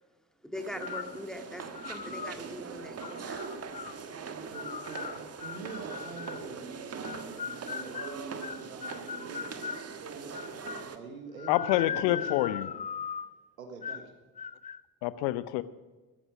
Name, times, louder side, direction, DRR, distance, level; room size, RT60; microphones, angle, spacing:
voice 1, 0.4-3.4, left 1 dB, ahead, 4 dB, 2.1 m, -42 dB
sound 1, 0.5-11.0, right 5 dB, 35° right, 1.5 m, -41 dB
sound 2, 0.8-1.2 1.7-2.4 3.0-4.0 4.5-6.5 7.0-9.9 10.3-10.9 11.4-13.4 13.8-14.1 14.4-14.8, left 7 dB, 20° left, 0.5 m, -39 dB
voice 2, 4.5-5.1 5.4-7.2 7.7-9.6 10.0-10.3 10.9-12.7 13.6-14.1, right 4 dB, 80° right, 6 dB, 1.6 m, -46 dB
voice 3, 11.5-12.7 15.0-15.6, left 16 dB, 65° left, 16 dB, 0.8 m, -27 dB
15.0 x 14.0 x 5.0 m, 1.2 s
figure-of-eight pair, 45°, 41 cm